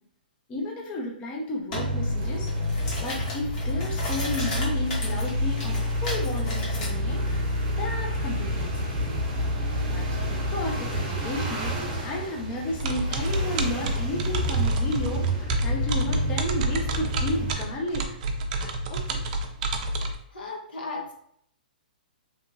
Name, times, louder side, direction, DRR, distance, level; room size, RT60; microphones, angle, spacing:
voice 1, 0.5-2.5 3.0-9.2 9.9-18.1 18.6-19.3, left 1 dB, 25° left, -1 dB, 0.5 m, -33 dB
sound 1, 1.7-1.9 2.3-6.9, left 1 dB, 50° left, 1.1 m, -35 dB
sound 2, 1.7-17.5, equal, 30° right, 0.9 m, -29 dB
sound 3, 12.8-20.1, right 2 dB, 50° right, 0.4 m, -29 dB
voice 2, 20.3-21.1, left 3 dB, 75° left, 1 dB, 0.8 m, -35 dB
2.8 x 2.4 x 2.6 m, 0.68 s
hypercardioid pair, 135°, 5 cm